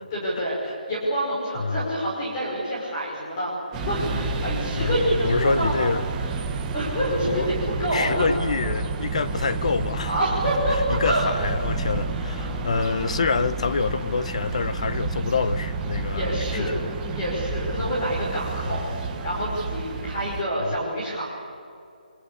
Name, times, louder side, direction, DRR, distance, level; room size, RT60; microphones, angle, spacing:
voice 1, 0.1-3.5 3.8-5.9 6.2-6.3 6.7-8.3 10.1-11.3 12.1-13.2 16.1-16.7 17.1-21.3, equal, 20° left, -5 dB, 5.3 m, -27 dB
voice 2, 1.6-1.9 4.8-6.0 7.2-7.5 7.9-10.2 10.9-16.9 17.8-17.9 18.7-18.8 20.6-20.7, left 4 dB, 40° left, 14 dB, 0.9 m, -26 dB
sound 1, 3.7-20.4, right 3 dB, 10° right, 1.0 m, -30 dB
25.5 x 23.0 x 8.5 m, 2.5 s
hypercardioid pair, 175°, 5 cm